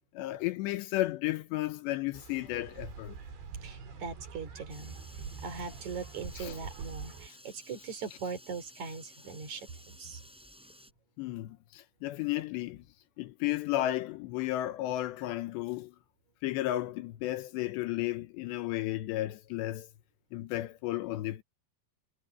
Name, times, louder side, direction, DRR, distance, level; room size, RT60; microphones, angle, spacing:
voice 1, 0.1-3.2 6.4-6.6 11.2-12.8 13.2-15.9 16.4-19.9 20.3-21.4, left 15 dB, 85° left, 3.1 m, -33 dB
sound 1, 2.1-7.3, right 6 dB, 85° right, 6.4 m, -45 dB
voice 2, 3.6-5.0 5.4-10.2, right 5 dB, 45° right, 4.8 m, -40 dB
four water faucet bathroom flow, 4.7-10.9, equal, ahead, 6.7 m, -55 dB
omnidirectional pair, 5.0 m